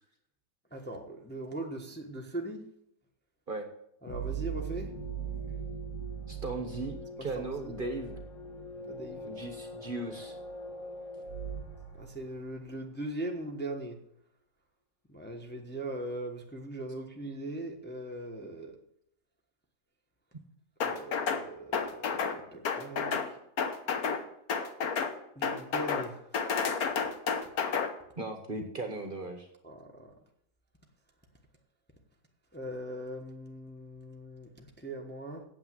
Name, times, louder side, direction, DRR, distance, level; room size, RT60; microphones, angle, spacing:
voice 1, 0.7-2.6 4.0-4.9 7.2-7.7 8.9-9.2 11.9-14.0 15.1-18.8 20.8-23.2 25.3-26.4 29.6-30.1 32.5-35.4, right 1 dB, 10° left, 1 dB, 1.0 m, -40 dB
sound 1, 4.1-12.7, right 5 dB, 45° left, 2.8 m, -40 dB
voice 2, 6.3-8.2 9.2-10.4 28.2-29.5, right 2 dB, 35° right, 4 dB, 1.2 m, -37 dB
sound 2, 20.8-21.4 21.7-22.4 22.6-23.3 23.6-24.2 24.5-25.1 25.4-26.1 26.3-27.9, left 6 dB, 70° left, 1.5 m, -30 dB
8.9 x 7.9 x 7.5 m, 0.74 s
omnidirectional pair, 1.7 m